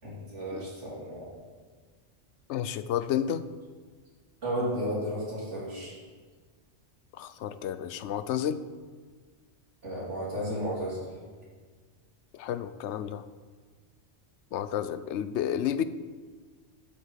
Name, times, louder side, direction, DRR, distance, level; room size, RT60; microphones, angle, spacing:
voice 1, 0.0-1.3 4.4-6.0 9.8-11.1, equal, 80° right, -6 dB, 3.6 m, -33 dB
voice 2, 2.5-3.5 7.2-8.6 12.3-13.2 14.5-15.8, left 9 dB, 80° left, 13 dB, 0.9 m, -31 dB
12.0 x 6.3 x 5.7 m, 1.5 s
omnidirectional pair, 1.2 m